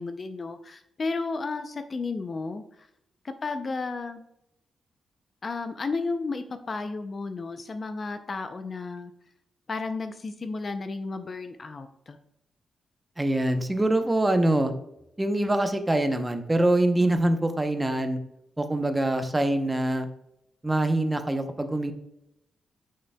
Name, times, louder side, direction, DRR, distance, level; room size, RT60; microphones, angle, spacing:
voice 1, 0.0-2.9 3.2-4.2 5.4-9.1 9.7-12.2, left 3 dB, 35° left, 9 dB, 0.4 m, -33 dB
voice 2, 13.2-14.7 15.2-18.2 18.6-20.1 20.6-21.9, right 1 dB, 10° right, 7 dB, 0.7 m, -24 dB
9.1 x 6.6 x 2.2 m, 0.82 s
wide cardioid pair, 140°, 0 cm